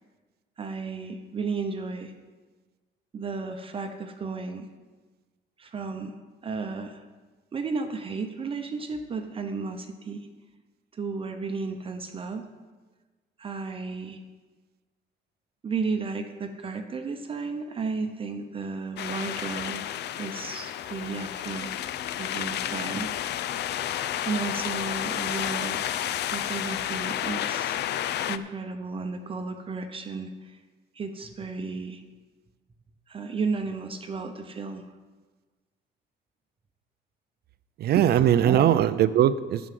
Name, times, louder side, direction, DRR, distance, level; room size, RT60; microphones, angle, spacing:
voice 1, 0.6-2.1 3.1-4.7 5.6-6.1 6.4-7.0 7.5-10.3 10.9-12.5 13.4-14.2 15.6-19.8 20.1-23.2 24.2-25.9 26.2-27.8 28.2-30.6 30.9-32.0 33.1-34.9 37.9-38.1 38.4-38.8, right 4 dB, 30° right, 6 dB, 0.8 m, -33 dB
sound 1, 19.0-28.4, left 11 dB, 60° left, 0.5 m, -31 dB
voice 2, 37.8-39.7, right 11 dB, 55° right, 14 dB, 0.4 m, -21 dB
11.0 x 6.1 x 7.6 m, 1.3 s
cardioid pair, 160°, 20 cm